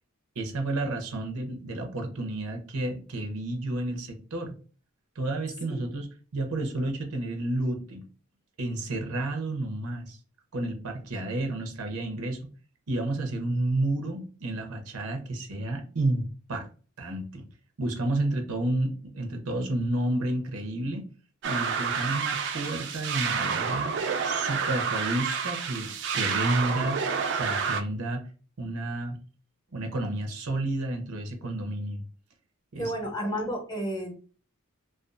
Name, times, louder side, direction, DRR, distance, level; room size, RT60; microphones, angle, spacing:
voice 1, 0.4-4.5 5.2-8.1 8.6-10.2 10.5-12.5 12.9-16.6 17.0-17.5 17.8-21.0 21.4-23.9 24.2-27.0 27.3-28.3 28.6-29.2 29.7-32.0 32.7-32.9, right 2 dB, 85° right, 4 dB, 0.7 m, -31 dB
sound 1, 21.4-27.8, right 6 dB, 55° right, 0.3 m, -29 dB
voice 2, 32.8-34.1, equal, 20° left, 0 dB, 0.7 m, -31 dB
2.5 x 2.3 x 2.4 m, 0.38 s
head